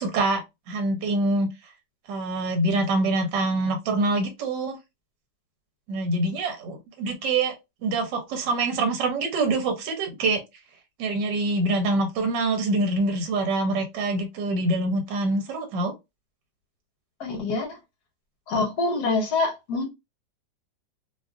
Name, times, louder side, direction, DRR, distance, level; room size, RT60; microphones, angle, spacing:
voice 1, 0.0-1.5 2.1-4.8 5.9-7.5 7.8-10.4 11.0-15.9, right 2 dB, 75° right, 1.3 m, -25 dB
voice 2, 17.2-17.8 18.5-19.9, left 3 dB, 65° left, 1.3 m, -25 dB
3.1 x 2.4 x 2.3 m
omnidirectional pair, 2.0 m